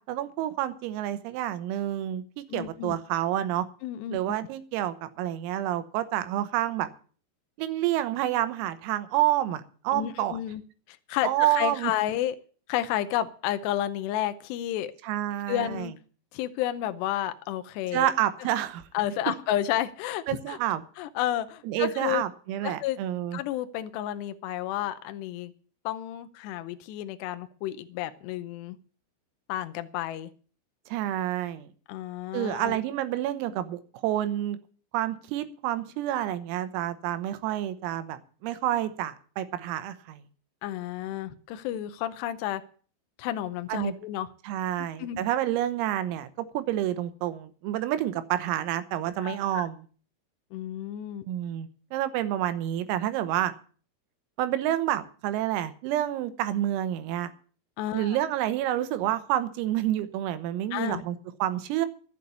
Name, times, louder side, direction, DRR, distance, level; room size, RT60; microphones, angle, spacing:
voice 1, 0.0-3.7 4.1-6.9 7.6-10.4 11.2-11.9 15.0-15.9 17.9-18.8 20.3-20.8 21.6-23.4 30.9-31.7 32.3-34.6 34.9-40.2 43.7-43.9 44.5-49.9 51.3-53.5 54.4-57.3 57.9-61.9, right 13 dB, 85° right, 11 dB, 3.8 m, -29 dB
voice 2, 2.5-3.0 3.8-4.4 9.9-10.6 10.9-12.4 12.7-14.9 15.5-15.9 16.3-18.1 18.9-20.6 21.0-22.2 22.6-23.0 23.3-25.5 25.9-28.8 29.5-30.3 31.9-32.8 40.6-42.6 43.2-44.3 44.8-45.2 49.2-49.6 50.5-51.3 57.8-58.2 60.7-61.0, left 12 dB, 90° left, 10 dB, 2.4 m, -31 dB
13.0 x 8.4 x 8.3 m, 0.42 s
omnidirectional pair, 5.9 m